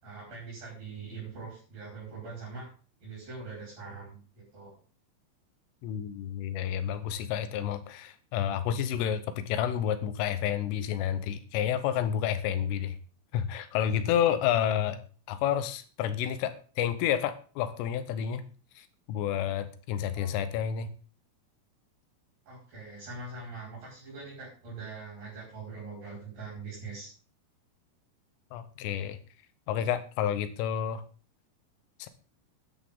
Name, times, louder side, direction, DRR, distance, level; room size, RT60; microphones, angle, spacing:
voice 1, 0.0-2.7 3.0-4.7 20.1-20.3 22.5-27.1, right 4 dB, 45° right, -4 dB, 7.0 m, -42 dB
voice 2, 5.8-13.0 13.3-15.0 15.3-18.4 18.8-20.9 28.5-29.2 29.7-31.0 32.0-32.1, left 9 dB, 85° left, 11 dB, 3.6 m, -30 dB
13.0 x 11.0 x 3.9 m, 0.38 s
omnidirectional pair, 5.7 m